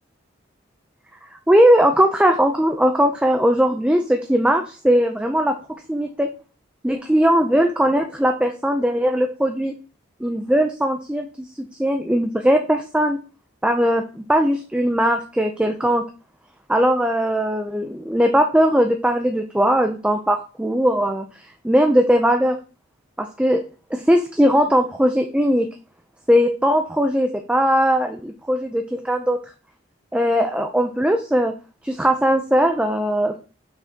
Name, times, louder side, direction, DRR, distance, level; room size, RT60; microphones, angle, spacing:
voice 1, 1.5-5.6 5.9-6.3 6.8-9.7 10.2-11.3 11.8-13.2 13.6-16.0 16.7-21.2 21.6-22.6 23.2-23.6 23.9-25.7 26.3-29.4 30.1-31.5 31.8-33.4, equal, 5° right, 4 dB, 0.4 m, -19 dB
6.3 x 5.4 x 2.8 m, 0.35 s
head